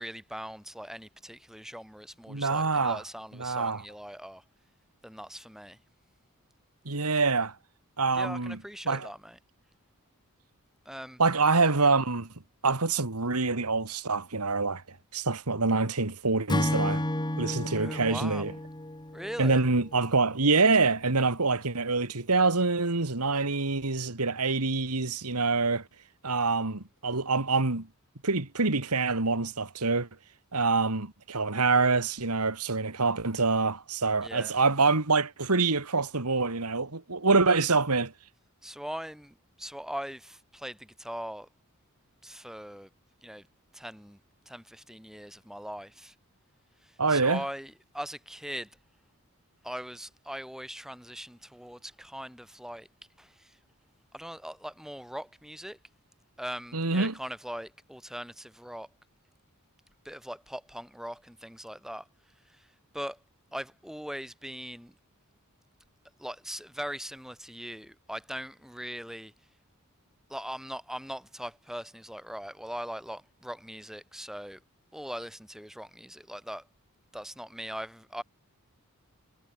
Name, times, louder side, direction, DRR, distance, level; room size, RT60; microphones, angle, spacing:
voice 1, 0.0-4.4 5.0-5.8 8.1-9.4 10.8-11.2 17.7-18.5 19.1-19.6 34.2-34.6 38.6-41.5 42.2-42.9 43.2-43.5 43.7-44.2 44.4-46.1 46.8-48.8 49.6-52.9 53.2-53.6 54.1-55.8 56.4-58.9 60.0-62.1 62.4-62.7 62.9-63.2 63.5-65.0 66.2-69.3 70.3-74.6 74.9-76.7 77.1-78.2, equal, ahead, 5.1 m, -40 dB
voice 2, 2.3-3.0 3.4-3.8 6.9-7.5 8.0-8.6 8.9-9.1 11.2-12.3 12.6-14.8 15.1-17.0 17.4-18.5 19.4-25.8 26.2-27.9 28.2-30.1 30.5-38.1 47.0-47.4 56.7-57.1, right 3 dB, 85° right, 2.3 m, -26 dB
Acoustic guitar / Strum, 16.5-19.9, left 1 dB, 20° left, 2.2 m, -31 dB
head